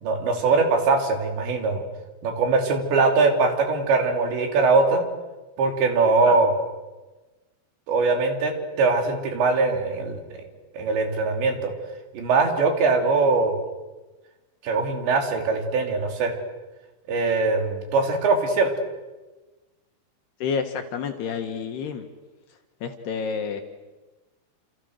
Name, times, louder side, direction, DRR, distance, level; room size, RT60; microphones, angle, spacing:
voice 1, 0.0-1.8 2.2-5.1 5.6-6.5 7.9-10.5 10.8-11.7 12.1-13.5 14.6-16.3 17.1-18.7, right 3 dB, 65° right, 4 dB, 5.2 m, -22 dB
voice 2, 20.4-22.0 22.8-23.6, left 6 dB, 65° left, 6 dB, 3.2 m, -29 dB
29.0 x 28.5 x 6.6 m, 1.2 s
omnidirectional pair, 5.7 m